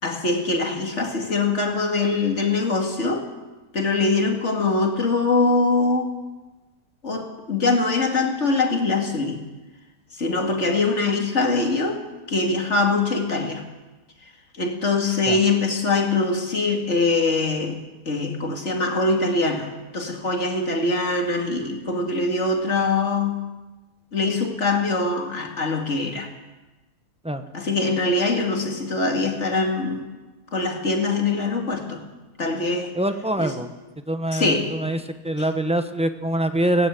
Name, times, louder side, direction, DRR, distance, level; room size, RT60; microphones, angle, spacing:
voice 1, 0.0-3.3 3.7-6.1 7.0-9.4 10.1-12.0 12.3-13.6 14.5-17.8 18.1-23.4 24.1-26.3 27.5-30.1 30.5-32.0 32.4-33.0 33.4-33.6 34.3-34.7, left 3 dB, 45° left, 3 dB, 2.7 m, -23 dB
voice 2, 32.9-33.7 34.1-35.0 35.2-36.9, right 1 dB, 5° right, 8 dB, 0.8 m, -24 dB
17.5 x 17.5 x 8.4 m, 1.2 s
omnidirectional pair, 1.7 m